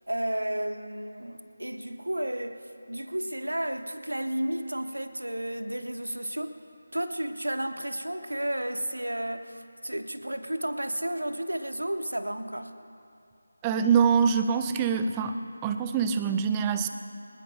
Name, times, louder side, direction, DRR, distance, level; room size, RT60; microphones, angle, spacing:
voice 1, 0.1-6.6 6.9-12.8, right 1 dB, 75° right, 1.2 m, -32 dB
voice 2, 13.6-15.3 15.6-16.9, right 6 dB, 10° right, 0.5 m, -24 dB
25.0 x 19.5 x 2.2 m
figure-of-eight pair, 160°, 0 cm